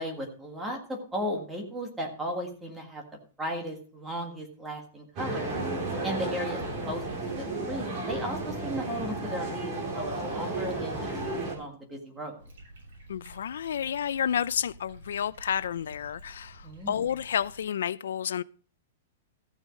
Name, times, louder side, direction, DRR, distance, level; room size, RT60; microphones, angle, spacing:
voice 1, 0.0-3.0 3.4-5.5 6.0-7.3 7.7-11.0 11.2-12.4 16.6-17.0, equal, 5° right, 1.7 m, -36 dB
sound 1, 5.2-11.6, right 2 dB, 25° right, 3.0 m, -33 dB
sound 2, 12.4-17.6, right 1 dB, 55° right, 7.2 m, -50 dB
voice 2, 13.1-18.4, left 9 dB, 80° left, 0.4 m, -30 dB
14.5 x 6.3 x 5.1 m
supercardioid pair, 175°, 0 cm